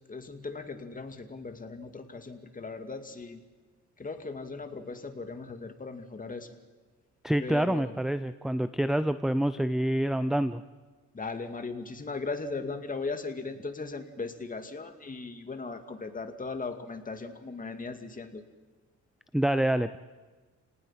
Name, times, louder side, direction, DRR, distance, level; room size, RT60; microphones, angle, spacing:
voice 1, 0.1-3.4 4.0-6.5 7.4-8.0 11.1-18.4, left 3 dB, 25° left, 6 dB, 2.4 m, -38 dB
voice 2, 7.2-10.6 19.3-20.0, right 1 dB, ahead, 12 dB, 0.6 m, -27 dB
30.0 x 18.5 x 5.9 m, 1.3 s
cardioid pair, 90°, 30 cm